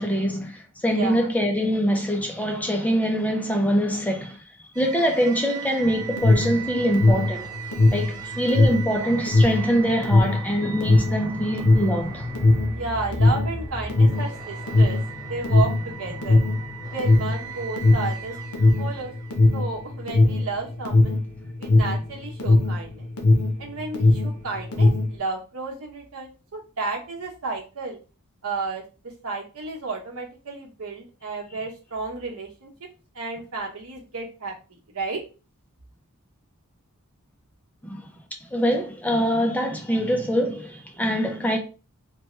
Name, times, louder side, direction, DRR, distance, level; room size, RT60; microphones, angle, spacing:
voice 1, 0.0-4.4 4.8-7.5 7.9-12.2 37.8-38.0 38.5-41.6, equal, 5° left, 0.5 m, -24 dB
voice 2, 0.9-1.3 12.7-16.4 16.9-19.1 19.5-21.2 21.6-23.1 23.6-28.0 28.4-28.8 29.2-32.7 33.1-35.2, right 3 dB, 70° right, 1.0 m, -32 dB
sound 1, 4.7-19.9, right 4 dB, 20° right, 0.8 m, -37 dB
Alarm, 5.8-23.6 23.9-25.2, left 2 dB, 70° left, 0.8 m, -19 dB
3.0 x 2.2 x 3.0 m
head